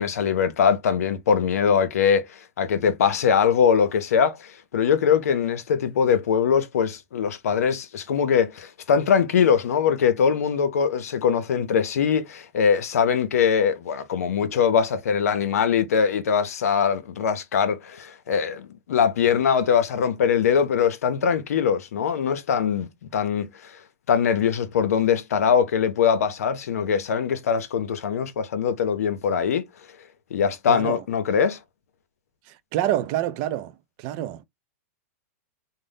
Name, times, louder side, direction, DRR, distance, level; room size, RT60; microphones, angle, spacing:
voice 1, 0.0-23.8 24.1-29.6 30.3-31.6, left 7 dB, 85° left, 0.6 m, -22 dB
voice 2, 30.7-31.0 32.7-33.7 34.0-34.4, right 13 dB, 40° right, 0.4 m, -26 dB
2.6 x 2.1 x 3.3 m
hypercardioid pair, 135°, 8 cm